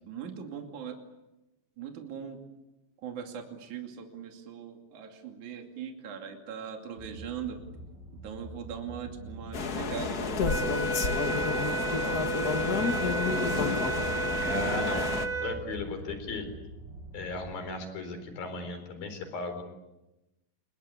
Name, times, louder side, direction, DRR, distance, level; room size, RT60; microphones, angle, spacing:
voice 1, 0.1-1.0 1.8-2.4 3.0-7.6 8.2-10.8 11.6-13.9, right 7 dB, 55° right, 3 dB, 3.8 m, -41 dB
sound 1, 7.0-17.5, right 2 dB, 25° right, 8.7 m, -45 dB
sound 2, 9.5-15.3, left 5 dB, 85° left, 0.8 m, -30 dB
sound 3, 10.4-15.6, right 3 dB, 5° left, 1.8 m, -32 dB
voice 2, 14.4-15.1 15.4-16.5 17.1-19.6, left 3 dB, 70° left, 8 dB, 5.8 m, -36 dB
29.5 x 21.5 x 8.4 m, 0.99 s
omnidirectional pair, 4.4 m